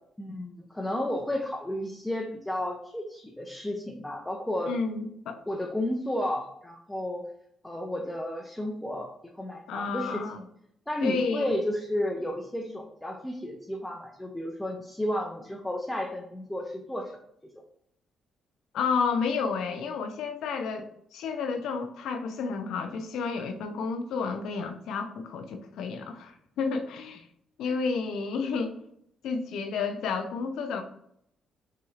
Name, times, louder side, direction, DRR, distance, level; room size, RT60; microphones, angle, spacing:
voice 1, 0.2-4.7 5.5-7.3 7.6-9.1 9.4-10.5 10.9-17.1 27.7-27.8, left 1 dB, 10° left, 0 dB, 0.6 m, -32 dB
voice 2, 4.7-5.4 9.7-10.4 11.0-11.6 18.7-27.2 27.6-28.7 29.2-30.8, left 5 dB, 80° left, 7 dB, 0.6 m, -31 dB
5.7 x 2.9 x 2.4 m, 0.71 s
cardioid pair, 90°, 0 cm